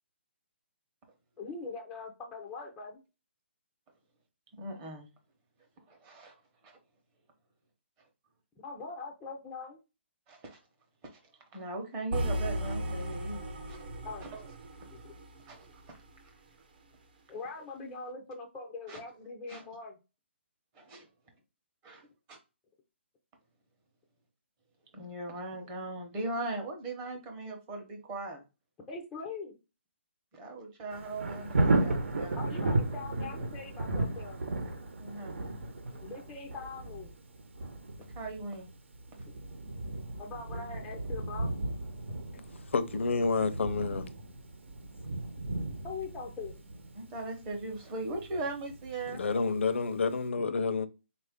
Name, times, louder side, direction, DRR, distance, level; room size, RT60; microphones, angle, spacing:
voice 1, 1.4-2.9 8.6-9.8 14.0-14.3 14.9-15.1 17.3-20.0 28.9-29.6 32.3-34.4 35.9-37.1 39.3-39.4 40.2-41.5 45.8-46.5, left 4 dB, 5° left, 0.4 m, -42 dB
voice 2, 4.5-5.1 5.9-6.4 6.6-6.8 10.3-10.6 11.0-11.2 11.5-13.4 13.7-13.8 14.2-14.4 15.5-16.0 18.9-19.0 19.5-19.7 20.7-21.1 21.8-22.4 24.9-28.4 30.3-32.4 35.0-35.4 38.1-38.7 46.9-49.2, right 2 dB, 15° right, 0.8 m, -39 dB
sound 1, 12.1-16.2, equal, 50° right, 0.9 m, -36 dB
Thunder, 30.9-49.7 50.1-50.2, right 2 dB, 80° right, 1.0 m, -35 dB
voice 3, 42.7-44.1 49.1-50.9, left 4 dB, 85° left, 0.6 m, -29 dB
4.1 x 2.5 x 3.5 m
hypercardioid pair, 170°, 7 cm